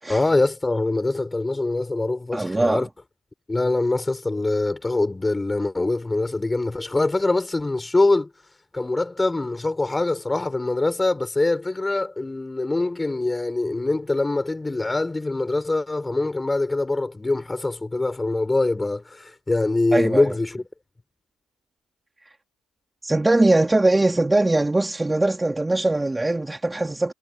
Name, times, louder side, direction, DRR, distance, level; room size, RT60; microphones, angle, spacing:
voice 1, 0.1-2.9 3.5-8.3 8.7-20.6, left 2 dB, 15° left, 7.3 m, -23 dB
voice 2, 2.3-2.9 19.9-20.3 23.0-27.1, right 2 dB, 15° right, 3.3 m, -21 dB
hypercardioid pair, 70°, 0 cm